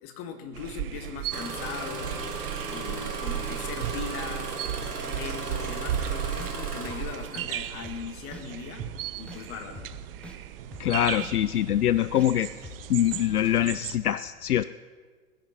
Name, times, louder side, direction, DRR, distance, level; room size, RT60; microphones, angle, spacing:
voice 1, 0.0-4.6 5.0-8.8 9.2-9.8, left 7 dB, 30° left, 6 dB, 1.7 m, -39 dB
sound 1, 0.5-14.0, right 12 dB, 40° right, 0.7 m, -36 dB
Engine starting, 1.3-7.8 8.7-9.0 9.6-10.0 10.6-10.8, right 3 dB, 75° right, 2.3 m, -36 dB
sound 2, 5.9-6.0 6.4-6.5 6.9-7.0 7.3-7.5 7.8-8.0 8.3-8.4 8.8-8.9 9.3-9.4 9.8-9.9 10.2-10.4 10.7-10.8 11.2-11.3 11.7-11.8 12.2-12.3 12.6-12.8 13.1-13.2, left 1 dB, ahead, 1.2 m, -42 dB
voice 2, 10.8-12.5 12.9-14.6, left 12 dB, 70° left, 15 dB, 0.6 m, -24 dB
20.0 x 10.5 x 5.7 m, 1.5 s
figure-of-eight pair, 110°, 47 cm